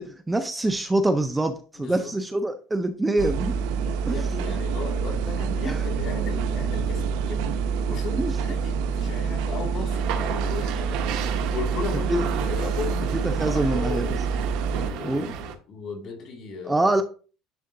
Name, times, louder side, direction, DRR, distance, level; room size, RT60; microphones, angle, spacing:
voice 1, 0.0-3.6 4.1-4.6 5.6-5.8 8.2-8.3 12.1-12.2 13.4-14.0 15.0-15.3 16.7-17.0, right 2 dB, 10° right, 0.4 m, -25 dB
voice 2, 1.7-2.1 3.8-7.6 7.9-11.0 11.5-14.1 14.7-15.4 15.7-17.0, left 5 dB, 45° left, 2.2 m, -36 dB
sound 1, 3.2-14.9, right 6 dB, 85° right, 0.6 m, -27 dB
sound 2, 9.9-15.6, right 7 dB, 70° right, 1.1 m, -33 dB
10.0 x 3.8 x 2.6 m
cardioid pair, 150°, 0 cm